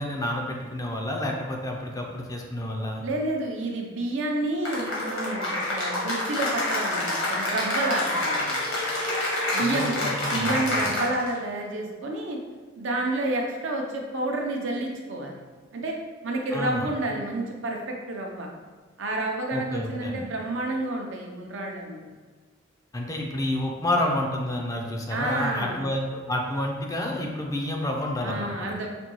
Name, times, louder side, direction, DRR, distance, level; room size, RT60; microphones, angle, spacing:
voice 1, 0.0-3.0 9.6-10.9 16.5-16.9 19.5-20.3 22.9-28.7, left 1 dB, 15° left, 1 dB, 0.4 m, -29 dB
voice 2, 3.0-8.9 9.5-12.4 12.8-15.4 15.7-16.0 16.2-18.5 19.0-22.0 25.1-25.8 28.2-28.9, right 2 dB, 65° right, 0 dB, 0.6 m, -30 dB
Cheering / Applause, 4.7-11.4, left 1 dB, 80° left, 1.2 m, -27 dB
5.0 x 2.2 x 3.0 m, 1.5 s
head